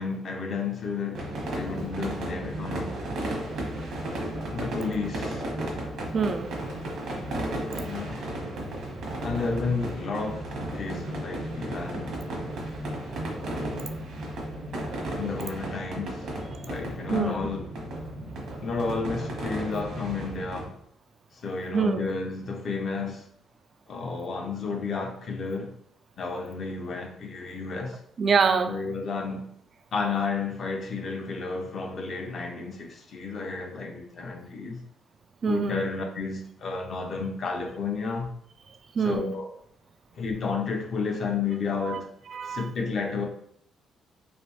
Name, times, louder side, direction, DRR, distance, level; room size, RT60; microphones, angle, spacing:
voice 1, 0.0-2.9 4.5-5.4 7.8-8.3 9.2-12.2 15.1-17.6 18.6-20.8 21.3-23.2 23.9-25.7 26.2-28.0 28.6-29.5 29.9-34.8 35.5-38.3 39.0-39.5 40.1-42.1 42.4-43.2, left 4 dB, 55° left, 0.8 m, -32 dB
sound 1, 1.1-20.6, right 1 dB, 75° right, 1.2 m, -34 dB
voice 2, 6.1-6.5 17.1-17.5 21.7-22.1 28.2-28.8 35.4-35.9 38.7-39.3 41.8-42.0 42.3-42.7, right 5 dB, 50° right, 0.4 m, -26 dB
3.3 x 3.0 x 3.0 m
cardioid pair, 90°, 0 cm